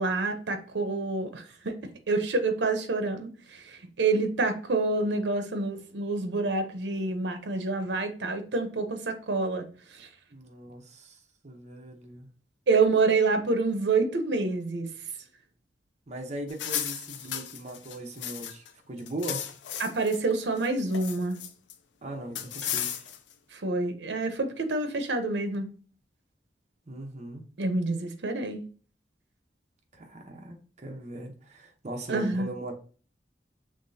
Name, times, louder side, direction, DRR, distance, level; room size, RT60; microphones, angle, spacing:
voice 1, 0.0-1.8 2.1-9.6 10.0-10.1 12.7-14.9 19.8-21.4 23.5-25.7 27.6-28.6 32.1-32.5, right 3 dB, 75° right, 0.7 m, -27 dB
voice 2, 10.3-12.3 16.1-19.5 22.0-23.0 26.9-27.5 29.9-32.7, right 1 dB, 40° right, 0.8 m, -39 dB
sound 1, 16.5-18.7 19.0-20.2 20.6-21.7 22.3-23.3, left 10 dB, 85° left, 0.4 m, -35 dB
5.8 x 3.2 x 2.7 m
head